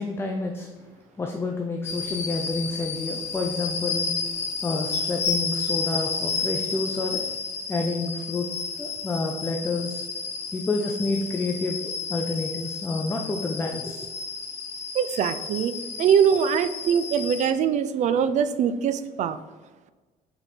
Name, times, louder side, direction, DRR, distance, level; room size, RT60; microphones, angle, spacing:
voice 1, 0.0-7.2 7.7-8.5 8.8-10.1 10.5-11.8 12.1-14.1, left 3 dB, 15° left, 3 dB, 0.5 m, -29 dB
sound 1, 1.8-17.5, left 5 dB, 45° left, 0.9 m, -31 dB
voice 2, 14.9-15.7 16.0-19.4, right 8 dB, 50° right, 13 dB, 0.4 m, -22 dB
5.2 x 4.5 x 4.2 m, 1.3 s
cardioid pair, 140°, 15 cm